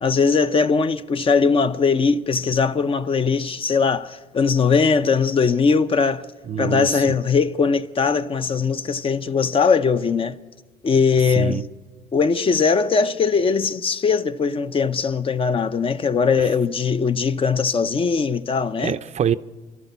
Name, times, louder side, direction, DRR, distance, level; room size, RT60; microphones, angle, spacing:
voice 1, 0.0-6.2 6.6-10.4 10.8-11.6 12.1-19.0, left 5 dB, 35° left, 0.7 m, -20 dB
voice 2, 6.5-7.0 11.4-11.6 16.4-16.5 18.8-19.4, right 9 dB, 40° right, 0.6 m, -25 dB
29.5 x 12.0 x 8.2 m
cardioid pair, 110°, 17 cm